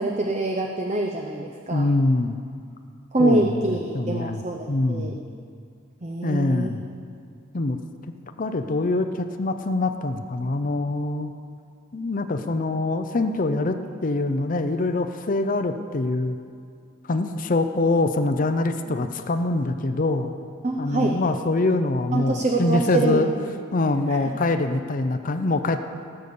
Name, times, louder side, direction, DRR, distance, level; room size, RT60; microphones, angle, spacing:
voice 1, 0.0-1.9 3.1-5.2 6.0-6.7 18.9-19.0 20.6-21.2 22.1-23.2 24.1-24.2, right 2 dB, 30° right, 2 dB, 0.6 m, -25 dB
voice 2, 1.7-2.4 3.2-4.4 4.7-5.2 6.2-6.8 7.5-7.8 8.4-11.3 11.9-16.4 17.1-20.3 20.8-23.3 23.7-25.9, left 2 dB, 40° left, 8 dB, 0.6 m, -24 dB
17.0 x 6.8 x 6.9 m, 2.3 s
head